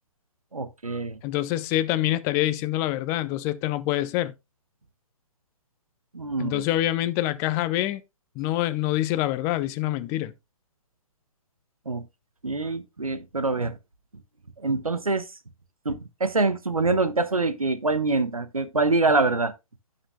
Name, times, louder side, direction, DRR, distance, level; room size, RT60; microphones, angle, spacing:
voice 1, 0.5-1.2 6.1-6.6 11.8-12.1 12.4-13.8 14.6-15.3 15.8-19.5, right 3 dB, 80° right, 1.2 m, -25 dB
voice 2, 1.2-4.3 6.4-8.0 8.4-10.3, left 14 dB, 15° left, 0.4 m, -26 dB
16.0 x 5.7 x 2.2 m
figure-of-eight pair, 130°, 18 cm